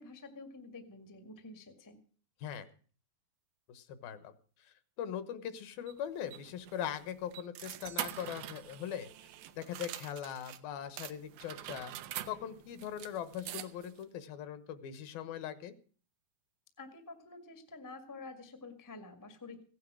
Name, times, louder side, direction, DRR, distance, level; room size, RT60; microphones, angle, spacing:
voice 1, 0.0-2.0 16.8-19.6, left 3 dB, 20° left, 7 dB, 0.4 m, -49 dB
voice 2, 3.7-4.3 4.6-9.1 9.6-11.9 12.3-15.7, left 9 dB, 80° left, 12 dB, 2.9 m, -41 dB
sound 1, 5.9-10.6 11.0-14.0, right 13 dB, 90° right, 2.7 m, -45 dB
16.0 x 9.4 x 6.3 m, 0.42 s
omnidirectional pair, 4.2 m